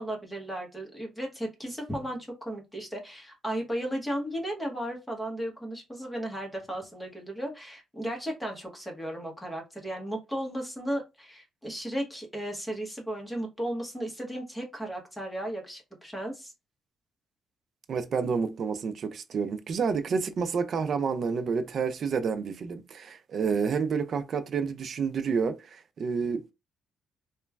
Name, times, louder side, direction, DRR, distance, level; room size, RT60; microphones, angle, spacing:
voice 1, 0.0-16.5, right 1 dB, 10° left, 1.0 m, -35 dB
voice 2, 17.9-26.5, right 5 dB, 55° right, 0.4 m, -29 dB
3.0 x 2.2 x 2.3 m
cardioid pair, 90°, 0 cm